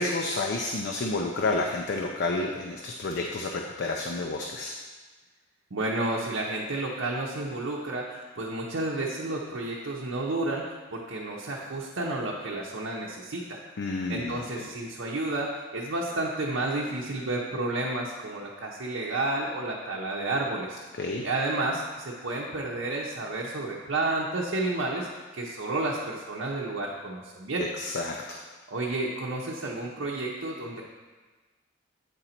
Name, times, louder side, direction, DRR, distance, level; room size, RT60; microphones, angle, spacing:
voice 1, 0.0-4.8 13.8-14.7 21.0-21.2 27.6-28.4, left 2 dB, 60° left, 1 dB, 0.5 m, -30 dB
voice 2, 5.7-13.6 14.1-20.8 21.2-25.1 25.3-27.7 28.7-30.8, right 2 dB, 75° right, -3 dB, 0.7 m, -31 dB
8.4 x 3.9 x 4.3 m, 1.3 s
head